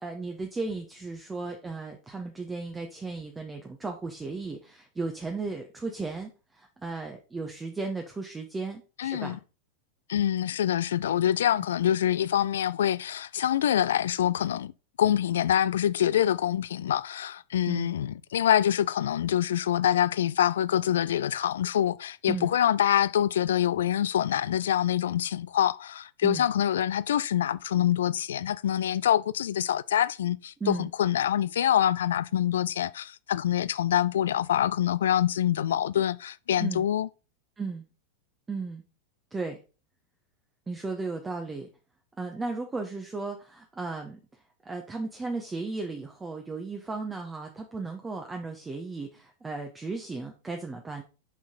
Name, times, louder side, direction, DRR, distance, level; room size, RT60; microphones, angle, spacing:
voice 1, 0.0-9.4 17.7-17.9 22.3-22.5 26.2-26.5 30.6-30.9 36.6-36.8 37.6-37.8 38.5-38.8 39.3-39.6 40.7-41.7 42.2-44.2 44.6-51.0, right 3 dB, 15° right, 0.9 m, -35 dB
voice 2, 9.0-9.4 10.1-14.7 15.0-37.1, left 10 dB, 60° left, 0.3 m, -25 dB
7.4 x 5.7 x 3.9 m
figure-of-eight pair, 90°, 0 cm